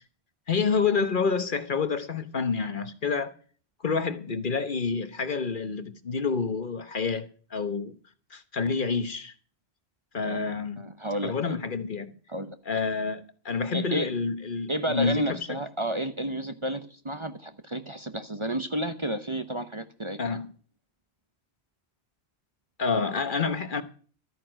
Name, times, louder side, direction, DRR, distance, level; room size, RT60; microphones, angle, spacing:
voice 1, 0.5-3.3 3.8-7.9 8.3-9.3 10.1-10.8 11.2-12.1 12.7-15.4 20.2-20.5 22.8-23.8, left 5 dB, 50° left, 1.2 m, -28 dB
voice 2, 10.2-11.6 12.3-12.6 13.7-14.2 14.7-20.4, right 1 dB, 30° right, 0.9 m, -32 dB
13.0 x 9.3 x 6.3 m
omnidirectional pair, 1.1 m